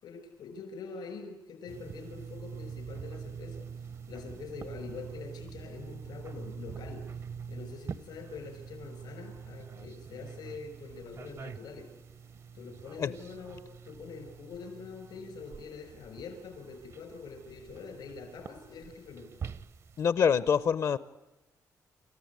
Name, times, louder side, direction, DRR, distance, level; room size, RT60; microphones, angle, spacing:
voice 1, 0.0-3.7 4.1-7.0 7.5-11.9 12.5-19.3, left 5 dB, 90° left, 7 dB, 5.5 m, -45 dB
sound 1, 1.7-20.1, right 6 dB, 45° right, 0.7 m, -45 dB
voice 2, 20.0-21.0, left 7 dB, 55° left, 16 dB, 0.7 m, -25 dB
29.0 x 14.5 x 9.5 m, 1.1 s
wide cardioid pair, 165°, 7 cm